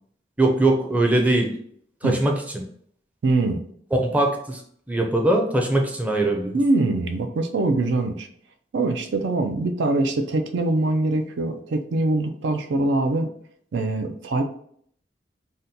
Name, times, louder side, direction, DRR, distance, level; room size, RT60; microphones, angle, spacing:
voice 1, 0.4-1.5 2.0-2.6 4.0-4.6 4.9-6.6, right 2 dB, 10° right, 1 dB, 0.4 m, -21 dB
voice 2, 3.2-3.6 6.5-8.3 8.7-13.3 13.7-14.4, right 2 dB, 85° right, 7 dB, 0.4 m, -23 dB
2.7 x 2.2 x 3.6 m, 0.63 s
head